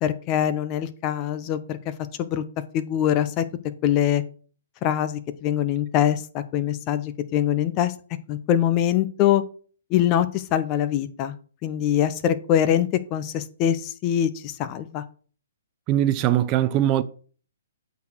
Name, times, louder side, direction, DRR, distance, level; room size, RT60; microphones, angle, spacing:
voice 1, 0.0-1.8 2.2-2.4 2.7-3.4 3.8-4.2 4.8-7.9 8.3-9.4 9.9-11.3 11.6-15.0, left 11 dB, 30° left, 0.8 m, -23 dB
voice 2, 15.9-17.0, right 12 dB, 30° right, 0.5 m, -21 dB
8.4 x 4.1 x 6.2 m
hypercardioid pair, 140°, 0 cm